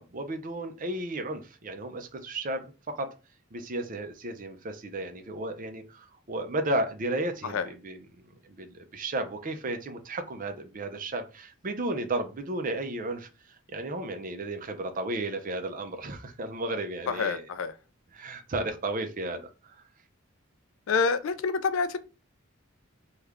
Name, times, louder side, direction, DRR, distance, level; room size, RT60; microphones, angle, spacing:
voice 1, 0.0-3.1 3.5-8.1 8.4-13.3 13.7-17.5 18.1-19.8, right 2 dB, 40° right, 0.5 m, -33 dB
voice 2, 17.1-17.7 20.9-22.0, left 5 dB, 70° left, 0.4 m, -27 dB
3.2 x 2.4 x 3.4 m
head